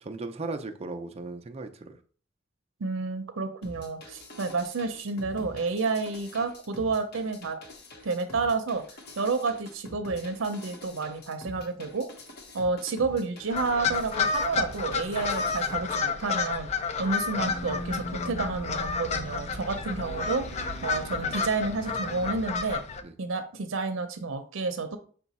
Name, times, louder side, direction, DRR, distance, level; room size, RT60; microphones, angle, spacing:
voice 1, 0.0-2.0 23.0-23.1, right 3 dB, 30° right, 6 dB, 0.4 m, -37 dB
voice 2, 2.8-7.6 8.0-8.8 9.2-12.1 12.5-16.7 17.0-22.8 23.2-25.0, right 3 dB, 85° right, 8 dB, 0.6 m, -30 dB
sound 1, 3.6-16.0, left 1 dB, 55° left, 0.9 m, -46 dB
sound 2, 13.5-23.0, left 5 dB, 35° left, 0.4 m, -31 dB
sound 3, 17.3-22.5, equal, 85° left, 0.8 m, -40 dB
5.9 x 2.2 x 4.1 m, 0.43 s
head